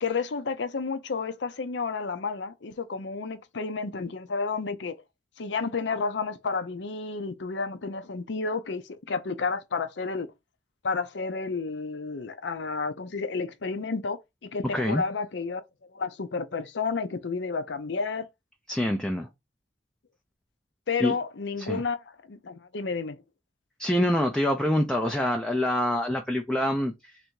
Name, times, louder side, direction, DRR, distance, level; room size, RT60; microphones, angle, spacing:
voice 1, 0.0-5.0 5.4-10.3 10.8-15.6 15.9-18.3 20.9-22.0 22.3-23.2, left 4 dB, 65° left, 0.6 m, -31 dB
voice 2, 14.7-15.0 18.7-19.3 21.0-21.1 21.6-21.8 23.8-27.2, left 1 dB, 5° left, 0.4 m, -26 dB
3.4 x 2.7 x 4.5 m
head